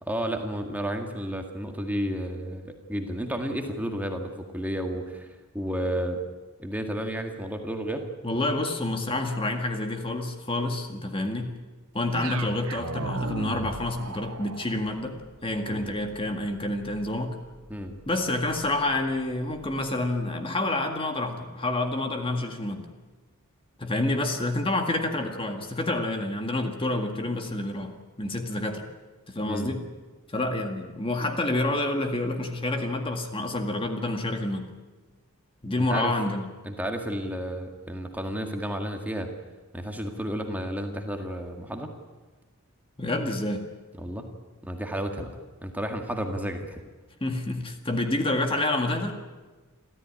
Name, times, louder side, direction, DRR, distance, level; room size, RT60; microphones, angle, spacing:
voice 1, 0.0-5.3 5.5-6.2 6.6-8.0 11.2-11.4 15.7-15.9 17.7-17.9 29.4-29.8 35.9-36.1 36.6-39.3 39.7-41.9 44.0-44.3 44.6-45.3 45.6-46.8, equal, 5° right, 4 dB, 1.9 m, -32 dB
voice 2, 8.2-11.6 11.9-17.4 18.1-22.9 23.8-28.9 29.3-29.8 30.3-34.7 35.6-36.5 43.0-43.6 47.2-49.2, left 2 dB, 25° left, 5 dB, 1.9 m, -28 dB
sound 1, 12.1-20.3, right 3 dB, 80° right, 1.5 m, -39 dB
28.0 x 14.0 x 10.0 m, 1.3 s
head